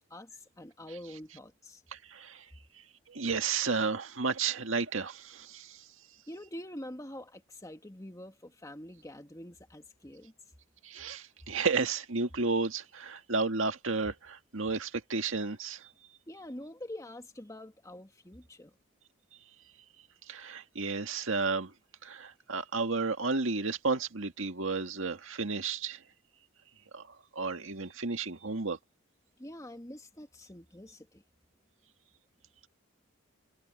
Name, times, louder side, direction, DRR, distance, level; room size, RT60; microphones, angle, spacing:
voice 1, 0.0-1.8 6.3-10.3 16.3-18.8 29.4-31.2, left 1 dB, 15° left, 2.0 m, -46 dB
voice 2, 1.9-2.4 3.1-5.8 10.8-15.8 20.3-21.7 22.0-26.0 26.9-27.0 27.3-28.8, right 4 dB, 75° right, 1.9 m, -32 dB
head